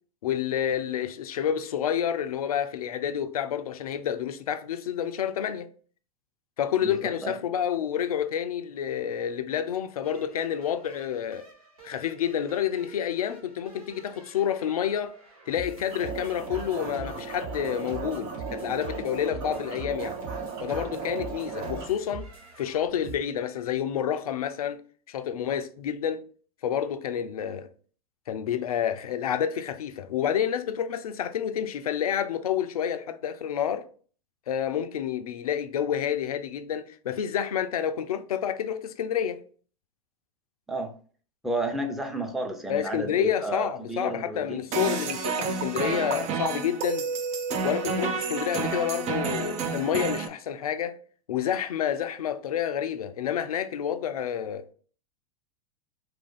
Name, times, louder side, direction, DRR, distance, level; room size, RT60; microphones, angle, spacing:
voice 1, 0.2-5.7 6.6-11.5 11.8-15.2 15.5-20.2 20.6-22.3 22.6-24.8 25.1-26.3 26.6-27.7 28.3-33.9 34.5-39.4 42.7-47.1 47.6-51.0 51.3-54.6, left 9 dB, 80° left, 0.4 m, -29 dB
voice 2, 6.8-7.3 40.7-40.9 41.4-45.0, right 2 dB, ahead, 0.7 m, -32 dB
sound 1, 10.0-23.2, right 3 dB, 80° right, 1.8 m, -44 dB
sound 2, 15.9-21.9, right 5 dB, 55° right, 1.1 m, -36 dB
sound 3, 44.7-50.3, right 5 dB, 40° right, 0.6 m, -30 dB
3.3 x 2.5 x 3.6 m
hypercardioid pair, 95°, 18 cm